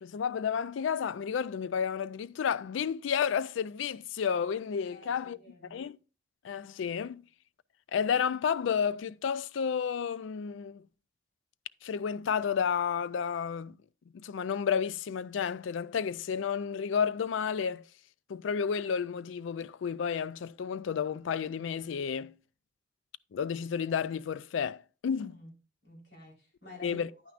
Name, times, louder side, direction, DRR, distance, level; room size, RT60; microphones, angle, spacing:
voice 1, 0.0-5.4 5.7-6.0 6.4-7.2 7.9-10.9 11.8-13.7 14.1-17.9 18.3-22.3 23.3-25.4 26.8-27.1, left 7 dB, 80° left, 0.4 m, -31 dB
voice 2, 4.9-5.8 25.2-25.5 25.8-27.1, left 1 dB, 60° left, 4.0 m, -50 dB
10.0 x 9.2 x 2.4 m
head